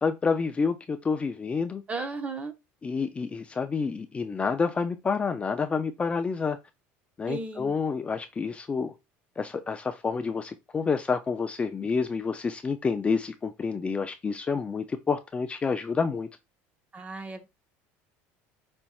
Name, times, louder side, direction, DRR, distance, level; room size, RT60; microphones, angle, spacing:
voice 1, 0.0-1.8 2.8-6.6 7.2-8.9 9.4-16.3, left 5 dB, 20° left, 0.4 m, -28 dB
voice 2, 1.9-2.5 7.3-7.7 16.9-17.5, right 3 dB, 20° right, 0.9 m, -35 dB
5.2 x 4.3 x 2.3 m
supercardioid pair, 120°, 6 cm